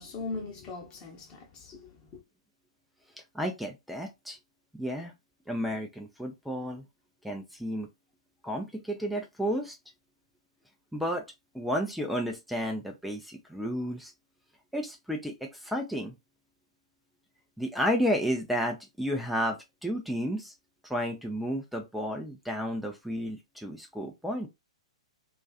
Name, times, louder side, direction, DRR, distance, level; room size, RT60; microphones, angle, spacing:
voice 1, 0.0-2.2, left 3 dB, 30° left, 0.9 m, -40 dB
voice 2, 3.3-4.4 4.7-5.1 5.5-6.8 7.2-7.9 8.4-9.7 10.9-11.2 11.5-14.1 14.7-16.1 17.6-20.5 20.9-24.5, equal, ahead, 0.5 m, -32 dB
2.5 x 2.3 x 2.3 m
figure-of-eight pair, 115°, 3 cm